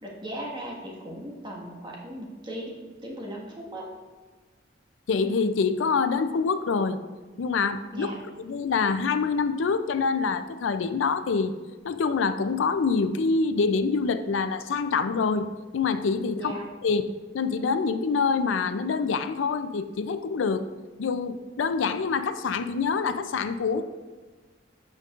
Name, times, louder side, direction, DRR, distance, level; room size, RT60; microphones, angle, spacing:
voice 1, 0.0-3.9 7.9-8.2 16.3-16.7, right 1 dB, 25° right, -3 dB, 1.5 m, -37 dB
voice 2, 5.1-7.0 7.4-8.1 8.4-11.5 11.8-16.5 16.8-17.0 17.3-20.6 21.0-23.8, left 5 dB, 80° left, 11 dB, 0.4 m, -26 dB
13.0 x 5.2 x 2.5 m, 1.4 s
head